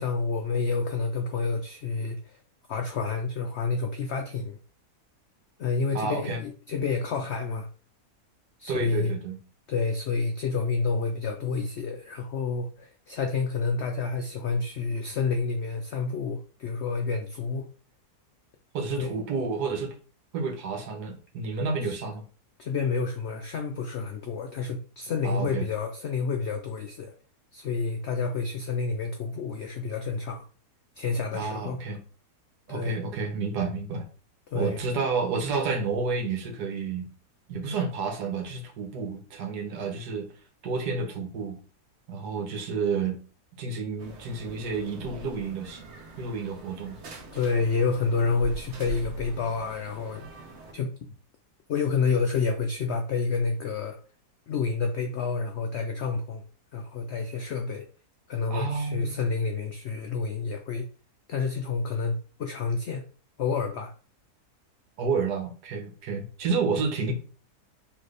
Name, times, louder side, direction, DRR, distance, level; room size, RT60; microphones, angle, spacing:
voice 1, 0.0-2.4 2.7-4.6 5.6-7.7 8.6-9.1 9.7-17.7 19.0-19.2 21.8-21.9 22.6-27.1 27.5-30.4 31.0-31.8 32.7-33.0 34.5-34.8 47.3-51.0 51.7-54.0 54.5-56.4 56.7-57.9 58.3-60.9 61.3-63.1 63.4-63.9, left 4 dB, 80° left, 0.6 m, -29 dB
voice 2, 5.9-6.4 8.7-9.4 18.7-19.9 20.3-22.3 25.2-25.7 31.3-32.0 32.7-34.1 34.5-37.1 37.5-40.3 40.6-41.6 42.1-43.2 43.6-45.8 46.2-47.0 58.5-59.2 65.0-67.1, right 4 dB, 85° right, 1.5 m, -30 dB
sound 1, 44.0-50.7, right 2 dB, 50° right, 1.0 m, -43 dB
4.1 x 3.3 x 3.2 m
omnidirectional pair, 1.7 m